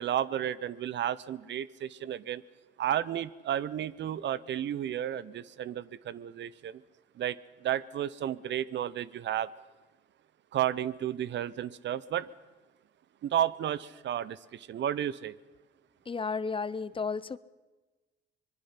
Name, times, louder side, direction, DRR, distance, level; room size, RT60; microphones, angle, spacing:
voice 1, 0.0-2.4 2.8-6.8 7.2-9.5 10.5-12.3 13.2-15.3, right 11 dB, 65° right, 18 dB, 0.7 m, -32 dB
voice 2, 16.1-17.4, left 5 dB, 25° left, 17 dB, 0.6 m, -33 dB
24.5 x 21.5 x 5.8 m, 1.2 s
cardioid pair, 90°, 20 cm